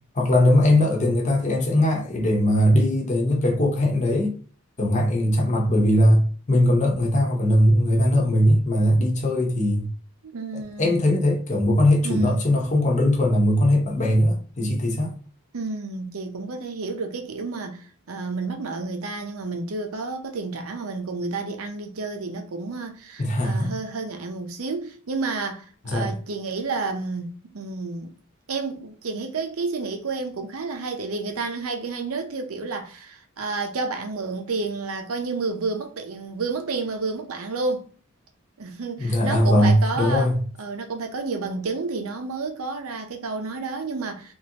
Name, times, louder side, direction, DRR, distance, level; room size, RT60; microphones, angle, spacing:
voice 1, 0.1-4.3 4.8-9.9 10.5-15.1 23.2-23.7 25.9-26.1 39.0-40.4, left 1 dB, 35° left, 0.7 m, -20 dB
voice 2, 10.2-11.2 12.0-12.5 15.5-28.1 28.5-37.9 38.6-40.3 40.6-44.3, right 3 dB, 80° right, 0.7 m, -30 dB
3.1 x 2.5 x 2.8 m
head